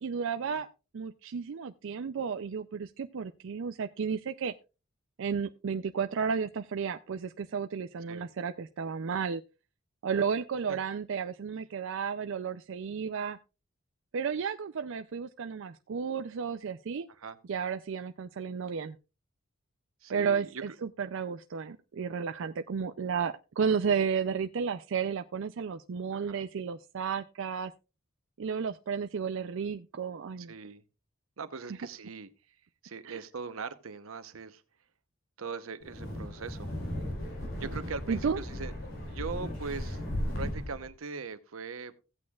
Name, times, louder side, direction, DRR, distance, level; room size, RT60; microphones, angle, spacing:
voice 1, 0.0-0.7 0.9-4.5 5.2-9.4 10.0-13.4 14.1-17.1 17.5-19.0 20.1-27.7 28.4-30.5 33.1-33.2 38.1-38.4, right 6 dB, 65° right, 0.4 m, -33 dB
voice 2, 20.0-20.8 26.1-26.4 30.4-30.8 31.4-32.3 32.8-34.6 35.4-36.7 37.6-38.7 39.1-40.0 40.4-41.9, right 4 dB, 85° right, 0.9 m, -41 dB
Wind, 35.8-40.9, left 1 dB, 70° left, 3.9 m, -36 dB
16.0 x 8.5 x 2.4 m
head